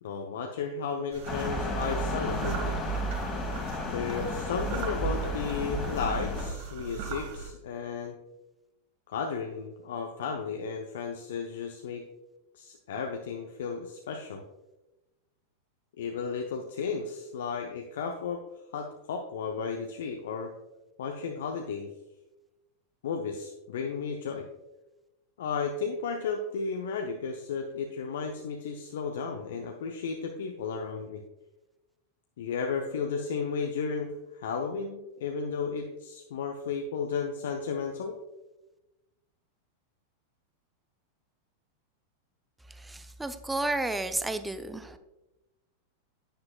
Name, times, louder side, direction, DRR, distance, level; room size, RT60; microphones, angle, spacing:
voice 1, 0.0-2.8 3.9-8.2 9.1-12.1 12.5-14.4 16.0-18.4 18.7-20.5 21.0-21.9 23.0-24.5 25.4-31.2 32.4-38.1, left 5 dB, 60° left, 3 dB, 0.7 m, -34 dB
sound 1, 1.1-7.5, right 6 dB, 50° right, 1.6 m, -40 dB
sound 2, 1.3-6.5, equal, 25° left, 1.7 m, -32 dB
voice 2, 42.8-45.0, right 2 dB, 5° right, 11 dB, 0.6 m, -32 dB
10.0 x 9.5 x 2.3 m, 1.0 s
figure-of-eight pair, 90°, 0 cm